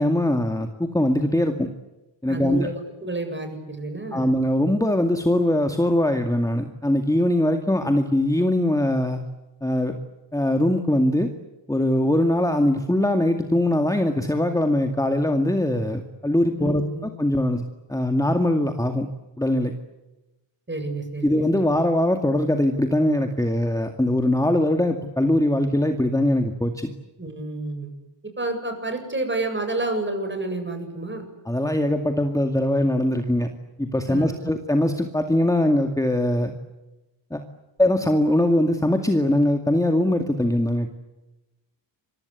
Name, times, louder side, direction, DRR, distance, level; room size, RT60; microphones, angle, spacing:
voice 1, 0.0-1.7 2.2-2.7 4.1-9.2 9.6-10.0 10.3-11.3 11.7-16.8 17.2-17.6 17.9-19.1 19.4-19.7 21.2-26.9 31.5-33.5 33.8-36.5 37.3-37.4 37.8-40.9, left 1 dB, 5° left, 5 dB, 2.2 m, -21 dB
voice 2, 2.3-2.7 3.0-4.4 16.6-17.0 20.7-21.6 27.2-27.9 28.2-31.3 34.1-34.4, right 2 dB, 25° right, 6 dB, 7.7 m, -30 dB
27.5 x 23.5 x 8.4 m, 1.0 s
wide cardioid pair, 105°, 47 cm